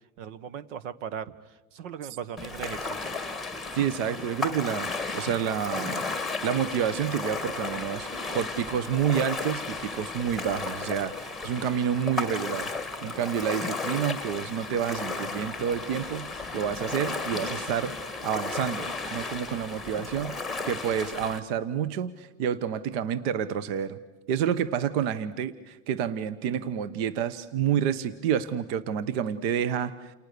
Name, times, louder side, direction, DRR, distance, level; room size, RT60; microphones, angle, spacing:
voice 1, 0.2-1.3 1.7-3.1, right 8 dB, 70° right, 16 dB, 1.4 m, -37 dB
Ocean, 2.4-21.4, left 3 dB, ahead, 1.4 m, -34 dB
voice 2, 3.7-4.9 5.1-6.0 6.4-8.1 8.3-20.4 20.6-24.0 24.3-30.1, right 8 dB, 55° right, 15 dB, 1.2 m, -29 dB
29.5 x 29.0 x 6.8 m, 1.1 s
supercardioid pair, 170°, 38 cm